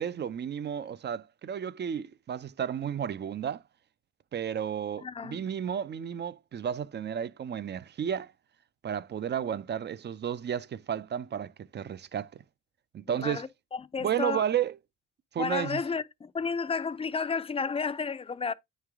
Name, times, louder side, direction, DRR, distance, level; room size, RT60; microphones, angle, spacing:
voice 1, 0.0-3.6 4.3-8.3 8.8-12.3 12.9-13.5 14.0-14.7 15.3-15.8, right 9 dB, 35° right, 0.4 m, -32 dB
voice 2, 5.0-5.4 13.1-14.4 15.4-18.5, left 5 dB, 20° left, 0.5 m, -32 dB
8.9 x 3.2 x 3.5 m
cardioid pair, 90°, 30 cm